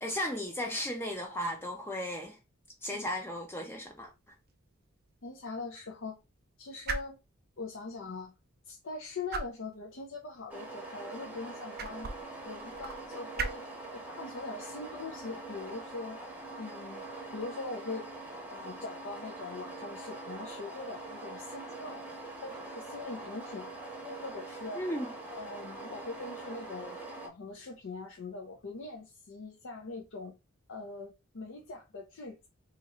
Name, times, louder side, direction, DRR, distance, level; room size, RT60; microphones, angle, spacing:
voice 1, 0.0-2.4 2.8-4.1 24.8-25.1, left 1 dB, 10° left, 0.4 m, -35 dB
sound 1, 3.8-17.4, right 4 dB, 45° right, 0.5 m, -44 dB
voice 2, 5.2-6.2 6.6-7.2 7.6-8.3 8.7-12.1 12.4-13.6 13.9-16.2 16.6-17.0 17.3-18.1 18.5-22.0 22.4-23.7 24.0-24.8 25.3-27.0 27.2-30.3 30.7-32.5, left 3 dB, 65° left, 0.6 m, -42 dB
sound 2, 10.5-27.3, right 2 dB, 5° right, 0.8 m, -43 dB
2.9 x 2.4 x 4.2 m
head